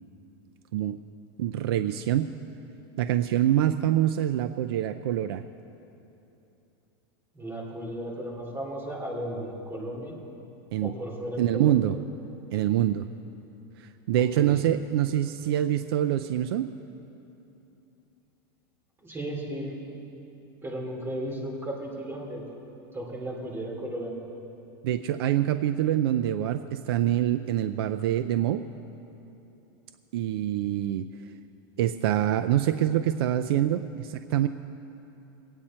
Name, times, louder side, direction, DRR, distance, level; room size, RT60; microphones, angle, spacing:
voice 1, 1.4-2.3 3.0-5.4 10.7-10.9 11.4-11.9 12.5-13.1 13.8-16.7 24.8-28.6 30.1-31.0 31.8-34.5, right 12 dB, 80° right, 9 dB, 0.5 m, -25 dB
voice 2, 7.3-10.2 10.8-11.9 14.1-14.7 19.0-20.0 20.6-22.4 22.9-24.2, right 1 dB, 20° right, -2 dB, 3.1 m, -35 dB
22.0 x 8.9 x 4.4 m, 2.9 s
supercardioid pair, 135°, 12 cm